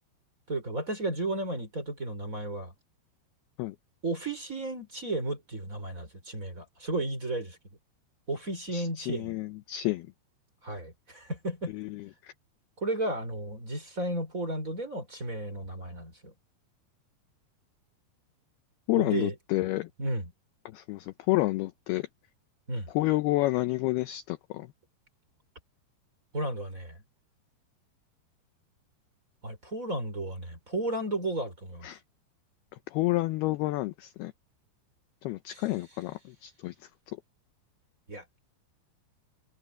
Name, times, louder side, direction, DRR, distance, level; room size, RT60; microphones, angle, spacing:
voice 1, 0.5-2.7 4.0-7.6 8.3-9.3 10.6-11.7 12.8-16.3 18.9-19.3 20.0-20.3 22.7-22.9 26.3-27.0 29.4-31.9 35.5-35.6 38.1-38.2, right 2 dB, 15° right, 5.0 m, -33 dB
voice 2, 8.7-10.1 11.7-12.3 18.9-19.9 20.7-22.1 22.9-24.7 31.8-32.0 32.9-34.3 35.2-36.9, left 18 dB, 80° left, 2.3 m, -29 dB
omnidirectional pair, 5.3 m